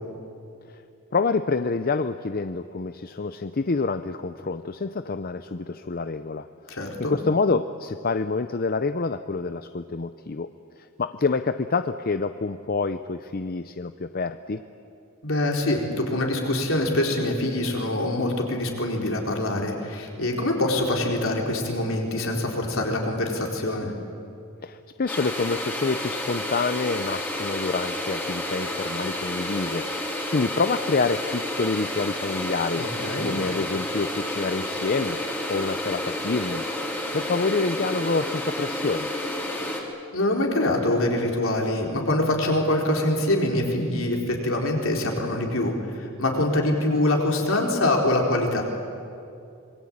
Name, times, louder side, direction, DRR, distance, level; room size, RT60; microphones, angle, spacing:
voice 1, 1.1-10.5 11.0-14.6 24.6-32.9 33.2-35.2 35.5-36.7 37.1-39.1, left 4 dB, 45° left, 10 dB, 0.6 m, -27 dB
voice 2, 6.7-7.1 15.2-23.9 32.8-33.3 40.1-48.6, left 1 dB, 70° left, 1 dB, 4.1 m, -24 dB
sound 1, 25.1-39.8, left 1 dB, 10° left, 3.2 m, -30 dB
26.0 x 22.0 x 8.7 m, 2.6 s
head